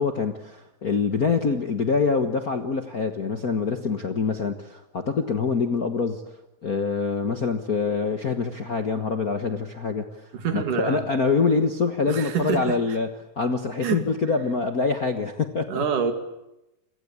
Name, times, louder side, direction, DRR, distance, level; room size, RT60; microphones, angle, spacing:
voice 1, 0.0-6.2 6.6-10.1 10.5-15.8, left 4 dB, 45° left, 8 dB, 1.1 m, -25 dB
voice 2, 10.3-11.1 12.1-12.8 13.8-14.1 15.7-16.1, right 7 dB, 85° right, 8 dB, 4.0 m, -26 dB
29.5 x 22.0 x 8.7 m, 0.91 s
omnidirectional pair, 3.5 m